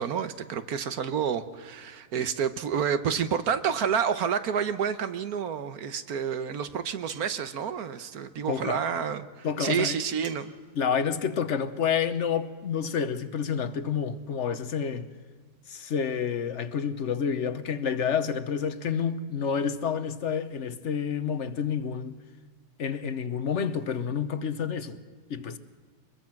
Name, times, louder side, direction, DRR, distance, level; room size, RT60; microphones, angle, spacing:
voice 1, 0.0-10.5, right 7 dB, 65° right, 1.4 m, -29 dB
sound 1, 7.1-7.5 10.2-10.6, right 4 dB, 40° right, 1.9 m, -47 dB
voice 2, 8.5-8.8 9.4-10.0 10.7-15.1 15.7-22.2 22.8-25.0 25.3-25.6, left 7 dB, 50° left, 1.1 m, -29 dB
23.5 x 21.5 x 5.9 m
omnidirectional pair, 1.8 m